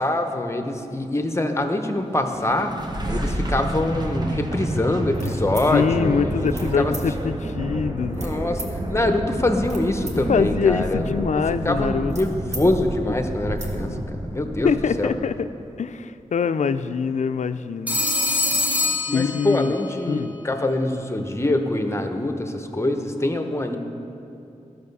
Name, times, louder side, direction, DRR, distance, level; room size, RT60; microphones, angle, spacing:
voice 1, 0.0-2.7 3.1-6.9 7.2-7.3 8.1-15.1 18.0-18.1 19.1-23.8, left 1 dB, 20° left, 6 dB, 0.8 m, -24 dB
sound 1, 2.2-15.3, right 1 dB, 35° right, 0.9 m, -29 dB
sound 2, 5.1-5.7 6.5-6.7 6.9-7.0 8.1-8.7 9.4-10.1 10.5-12.7 13.0-13.1 13.4-13.7, right 3 dB, 65° right, 1.3 m, -39 dB
voice 2, 5.7-8.2 10.3-12.1 14.6-15.5 15.8-18.0 19.1-19.7 20.1-20.3, left 6 dB, 70° left, 12 dB, 0.4 m, -23 dB
Telephone, 17.9-19.9, left 2 dB, 10° right, 1.1 m, -24 dB
12.5 x 6.5 x 5.4 m, 2.8 s
wide cardioid pair, 75°, 13 cm